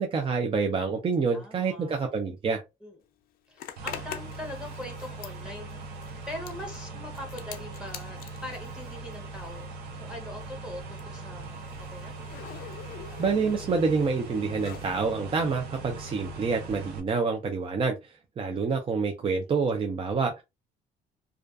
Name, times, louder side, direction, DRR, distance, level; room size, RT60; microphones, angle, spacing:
voice 1, 0.0-2.6 13.2-20.4, right 4 dB, 30° right, 0.4 m, -27 dB
voice 2, 1.3-1.9 2.8-3.0 3.5-5.8 6.3-9.7 10.0-12.1 18.5-18.6, left 1 dB, 5° right, 0.9 m, -41 dB
Zipper (clothing), 3.6-9.8 10.0-15.0, left 9 dB, 60° left, 0.4 m, -45 dB
sound 1, 3.8-17.0, right 3 dB, 75° right, 0.7 m, -41 dB
2.4 x 2.3 x 2.4 m
cardioid pair, 110°, 17 cm